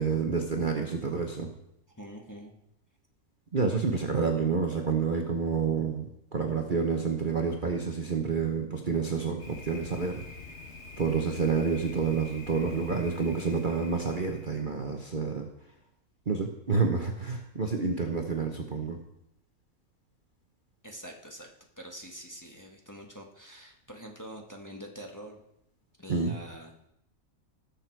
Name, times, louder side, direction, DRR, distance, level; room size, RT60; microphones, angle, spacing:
voice 1, 0.0-1.5 3.5-10.2 11.0-15.5 16.3-19.0 26.1-26.4, right 5 dB, 40° right, 3 dB, 1.0 m, -29 dB
voice 2, 1.9-2.5 20.8-21.5 21.8-25.4 26.0-26.7, equal, 15° left, 1 dB, 1.4 m, -45 dB
Thunder, 9.4-14.7, left 3 dB, 50° left, 1.6 m, -46 dB
18.5 x 6.8 x 4.6 m, 0.80 s
omnidirectional pair, 1.6 m